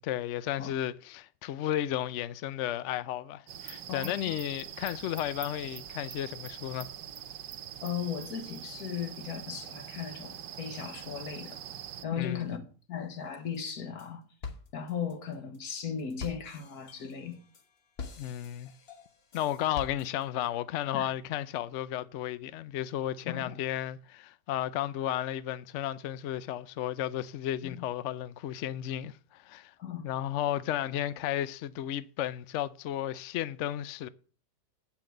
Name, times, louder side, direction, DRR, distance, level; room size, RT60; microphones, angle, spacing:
voice 1, 0.0-6.9 12.2-12.5 18.2-18.7 19.3-29.7 30.0-34.1, left 12 dB, 80° left, 0.6 m, -33 dB
sound 1, 3.5-12.0, right 10 dB, 80° right, 1.5 m, -44 dB
voice 2, 3.9-4.4 7.8-11.6 12.0-12.6 12.9-14.2 14.7-17.4 20.9-21.1 23.3-23.6 27.6-27.8 29.8-30.0, left 7 dB, 60° left, 1.8 m, -37 dB
sound 2, 13.5-14.1 14.4-20.5, left 5 dB, 40° left, 1.1 m, -45 dB
8.7 x 5.9 x 7.7 m
omnidirectional pair, 1.9 m